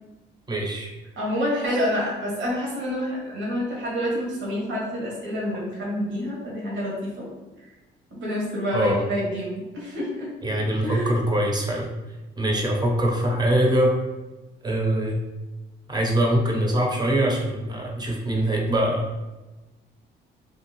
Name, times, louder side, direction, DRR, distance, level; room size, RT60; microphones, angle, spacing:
voice 1, 0.5-0.9 8.7-9.0 10.4-11.9 12.4-13.9 14.6-15.2 15.9-19.1, right 1 dB, 20° right, -1 dB, 0.8 m, -23 dB
voice 2, 1.2-7.3 8.1-10.3 10.8-11.1, equal, 75° right, -5 dB, 1.2 m, -28 dB
2.6 x 2.4 x 3.0 m, 1.1 s
cardioid pair, 90°, 20 cm